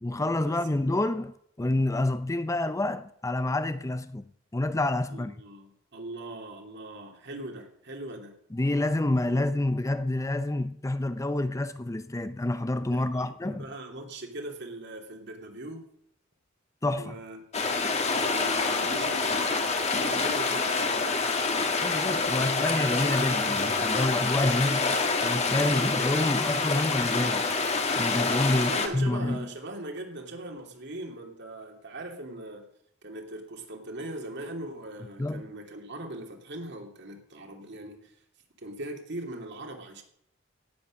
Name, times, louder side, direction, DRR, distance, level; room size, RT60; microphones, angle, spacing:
voice 1, 0.0-4.3 4.5-5.3 8.5-13.7 16.8-17.1 21.8-27.5 28.0-29.5 35.2-35.4, left 2 dB, 15° left, 0.5 m, -28 dB
voice 2, 5.1-8.3 9.3-9.4 12.8-15.8 17.0-17.4 18.2-19.5 19.9-21.0 28.5-32.6 33.0-38.1 38.6-40.0, right 1 dB, 60° right, 2.7 m, -40 dB
sound 1, 17.5-28.9, left 4 dB, 35° left, 1.6 m, -27 dB
17.5 x 8.4 x 6.4 m
head